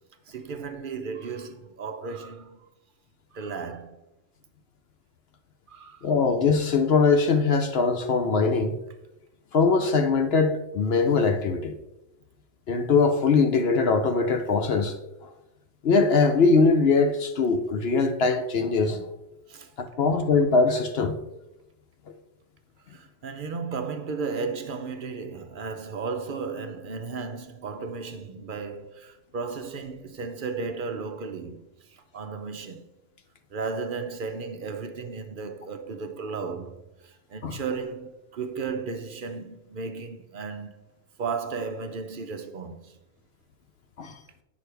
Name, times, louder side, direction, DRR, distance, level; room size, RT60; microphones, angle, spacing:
voice 1, 0.3-2.7 3.3-4.0 5.7-6.1 19.5-19.7 22.9-31.6 31.9-32.9 33.5-40.8 41.2-43.0, right 4 dB, 55° right, 0.7 m, -34 dB
voice 2, 6.0-8.8 9.5-11.7 12.7-14.9 15.8-19.1 19.8-21.2 37.4-37.6 44.0-44.1, left 4 dB, 60° left, 0.9 m, -22 dB
8.8 x 6.2 x 3.3 m
omnidirectional pair, 1.3 m